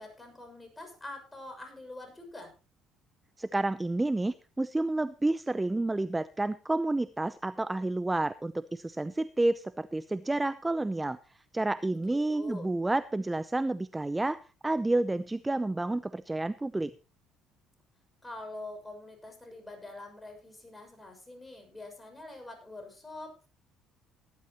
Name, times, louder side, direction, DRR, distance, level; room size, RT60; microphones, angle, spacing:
voice 1, 0.0-2.5 11.9-12.7 18.2-23.5, left 2 dB, 15° left, 4 dB, 6.6 m, -45 dB
voice 2, 3.4-11.2 11.5-14.4 14.6-16.9, right 2 dB, 15° right, 16 dB, 0.6 m, -30 dB
18.5 x 11.5 x 3.1 m, 0.32 s
hypercardioid pair, 65°, 0 cm